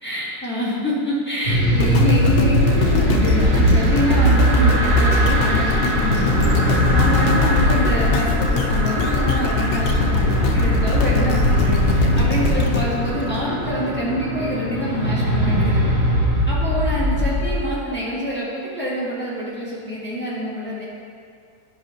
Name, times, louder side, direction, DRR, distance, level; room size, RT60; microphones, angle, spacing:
voice 1, 0.0-15.8 16.5-20.8, equal, 5° left, -9 dB, 1.6 m, -26 dB
sound 1, 1.5-17.5, equal, 45° right, 1.2 m, -20 dB
sound 2, 1.8-14.0 14.5-14.6, left 4 dB, 85° left, 0.5 m, -23 dB
10.5 x 6.1 x 2.8 m, 2.2 s
omnidirectional pair, 1.6 m